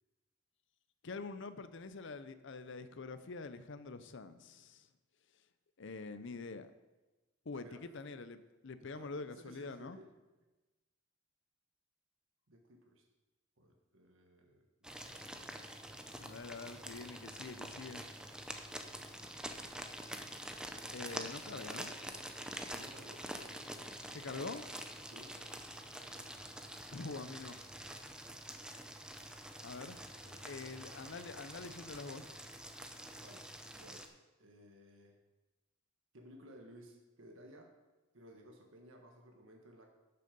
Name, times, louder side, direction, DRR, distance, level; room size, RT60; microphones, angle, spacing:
voice 1, 1.0-4.9 5.8-6.7 7.5-10.0 16.2-18.0 20.9-22.0 24.1-24.7 26.9-27.6 29.6-30.0 30.2-32.2, left 3 dB, 65° left, 12 dB, 0.7 m, -45 dB
voice 2, 7.5-8.0 8.8-10.1 12.5-13.1 13.6-15.2 15.9-16.1 22.7-23.3 25.0-25.4 33.2-34.1 34.4-35.2 36.1-37.8 38.1-40.0, equal, 75° right, 2 dB, 1.5 m, -57 dB
sound 1, 14.8-34.1, right 1 dB, 5° right, 0.7 m, -47 dB
12.0 x 6.8 x 5.3 m, 1.1 s
head